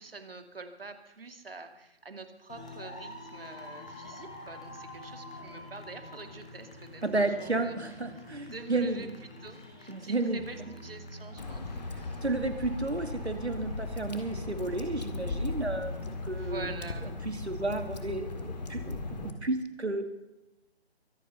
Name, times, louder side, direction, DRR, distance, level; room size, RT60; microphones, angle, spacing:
voice 1, 0.0-7.8 8.1-9.1 9.4-11.7 12.0-12.2 16.3-17.1, right 3 dB, 60° right, 7 dB, 2.4 m, -46 dB
sound 1, 2.5-16.8, left 1 dB, 5° left, 0.7 m, -46 dB
voice 2, 7.0-9.1 9.9-10.4 12.2-16.8 17.2-20.1, right 2 dB, 85° right, 7 dB, 2.6 m, -32 dB
Water / Drip, 11.4-19.3, left 3 dB, 40° left, 2.0 m, -37 dB
23.5 x 9.0 x 5.7 m, 0.94 s
figure-of-eight pair, 155°, 32 cm